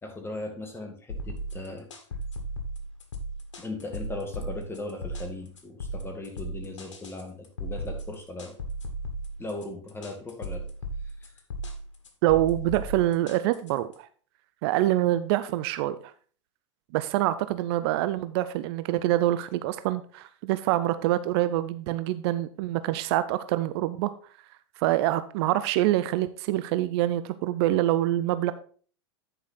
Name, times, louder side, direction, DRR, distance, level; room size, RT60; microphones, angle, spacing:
voice 1, 0.0-1.9 3.6-8.5 9.4-10.7 11.0-11.3, left 2 dB, 15° left, 3 dB, 2.3 m, -38 dB
sound 1, 1.1-13.9, right 1 dB, 85° left, 1.7 m, -36 dB
voice 2, 12.2-14.1 14.6-16.0 16.9-24.1 24.8-28.5, right 14 dB, 55° right, 13 dB, 0.6 m, -25 dB
9.9 x 5.1 x 4.2 m, 0.43 s
hypercardioid pair, 105°, 16 cm